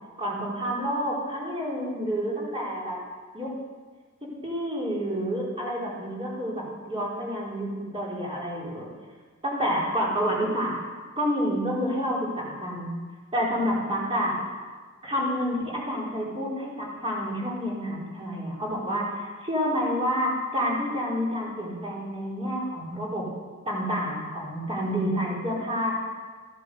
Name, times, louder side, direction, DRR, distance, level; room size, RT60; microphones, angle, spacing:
voice 1, 0.2-3.0 3.3-3.5 4.2-8.9 9.4-10.7 11.2-12.9 13.3-14.4 15.0-23.3 23.6-25.9, equal, 25° right, -5 dB, 4.5 m, -29 dB
14.5 x 10.5 x 7.8 m, 1.5 s
head